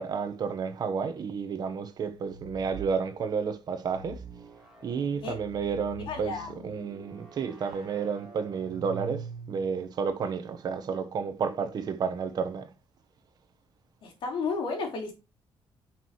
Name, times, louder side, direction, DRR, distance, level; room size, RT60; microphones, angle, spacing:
voice 1, 0.0-4.2 4.8-6.3 6.6-12.7, right 6 dB, 45° right, 1.2 m, -31 dB
sound 1, 2.0-3.0 3.8-9.8, right 3 dB, 10° right, 3.2 m, -44 dB
voice 2, 6.1-6.5 14.0-15.1, left 4 dB, 65° left, 3.5 m, -32 dB
10.0 x 6.1 x 3.2 m
cardioid pair, 170°, 9 cm